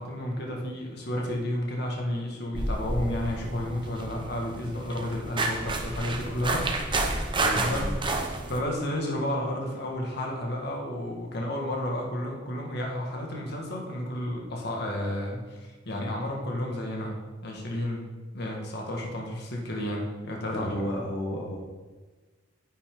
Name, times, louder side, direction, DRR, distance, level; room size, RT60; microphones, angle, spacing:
voice 1, 0.0-6.7 7.5-7.8 8.5-18.0 18.3-20.8, left 1 dB, 60° left, -1 dB, 1.9 m, -32 dB
sound 1, 2.5-8.6, right 2 dB, 25° right, 0.9 m, -30 dB
voice 2, 7.4-7.9 20.5-21.6, equal, 80° left, -3 dB, 1.5 m, -32 dB
9.6 x 8.6 x 3.8 m, 1.3 s
head